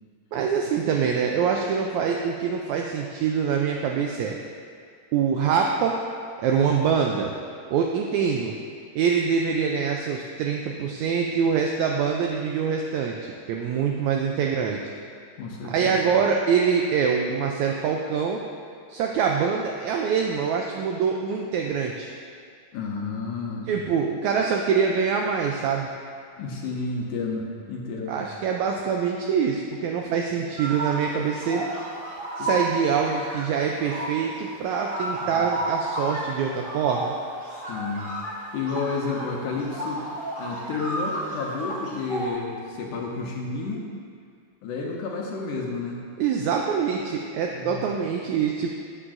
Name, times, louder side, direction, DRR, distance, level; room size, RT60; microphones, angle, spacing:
voice 1, 0.3-4.4 5.1-6.0 6.4-7.3 7.7-8.5 8.9-14.8 15.6-18.4 18.9-22.1 23.7-25.9 28.1-31.6 32.4-37.1 46.2-48.7, right 6 dB, 90° right, 1 dB, 1.6 m, -24 dB
voice 2, 15.4-16.0 22.7-23.7 26.4-28.2 32.4-32.6 35.1-35.5 37.5-38.1 38.5-40.0 40.4-43.8 44.6-46.0 47.5-47.8, left 4 dB, 75° left, -2 dB, 2.3 m, -31 dB
sound 1, 30.6-42.3, right 1 dB, 65° right, 0.5 m, -32 dB
12.0 x 8.5 x 2.6 m, 2.2 s
omnidirectional pair, 3.9 m